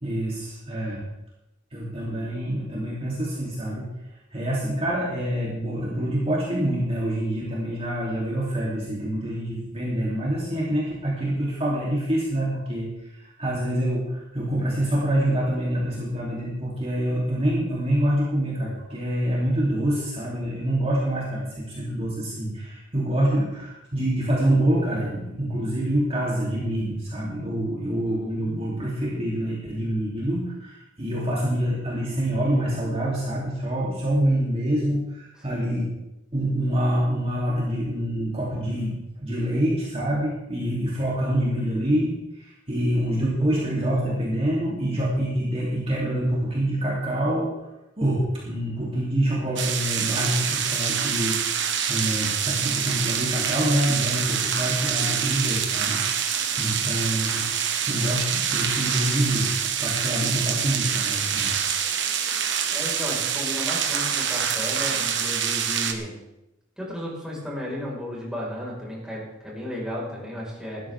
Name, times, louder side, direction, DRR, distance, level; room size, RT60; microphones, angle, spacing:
voice 1, 0.0-1.0 1.7-3.8 4.3-35.9 36.3-47.5 48.0-59.5 59.8-61.5, right 1 dB, 30° right, -5 dB, 3.3 m, -26 dB
sound 1, 49.6-65.9, right 8 dB, 65° right, 1.4 m, -26 dB
voice 2, 62.7-66.2 66.8-70.8, left 1 dB, 5° right, -5 dB, 5.2 m, -34 dB
18.0 x 13.0 x 3.7 m, 0.91 s
head